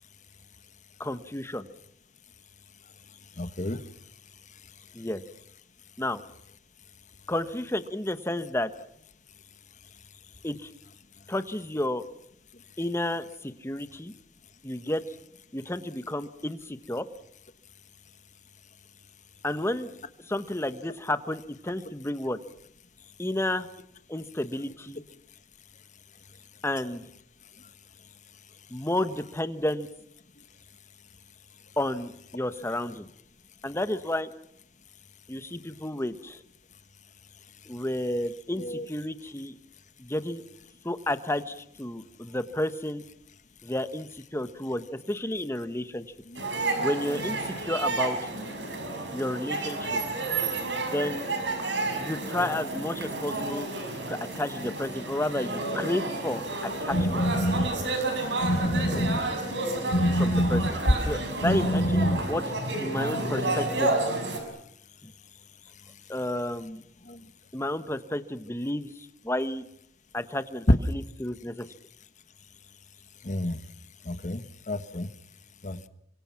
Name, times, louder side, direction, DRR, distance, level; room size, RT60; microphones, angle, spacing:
voice 1, 1.0-1.7 4.9-5.2 6.0-6.2 7.3-8.7 10.4-10.7 11.3-12.0 12.8-14.1 14.6-15.0 15.5-17.1 19.4-19.9 20.3-22.4 23.2-23.7 24.1-25.0 26.6-27.1 28.7-29.9 31.8-33.1 33.6-34.3 35.3-36.4 37.7-39.5 40.0-40.4 40.8-43.0 43.6-46.0 46.8-48.3 49.1-50.0 50.9-51.3 51.9-53.7 54.1-56.4 56.8-57.2 60.2-60.8 61.0-62.4 62.8-63.9 65.0-65.1 66.1-66.8 67.5-69.7 70.1-71.7, left 1 dB, 15° left, 11 dB, 1.1 m, -31 dB
voice 2, 3.4-3.8 38.6-38.8 46.3-46.4 58.7-59.1 67.1-67.2 73.2-73.6 74.0-74.4 74.7-75.1 75.6-75.9, left 1 dB, 45° left, 10 dB, 1.4 m, -33 dB
sound 1, 46.4-64.4, right 2 dB, 85° right, 6.3 m, -31 dB
sound 2, 56.4-62.5, equal, 80° left, 5.2 m, -27 dB
28.5 x 25.0 x 5.9 m, 0.71 s
head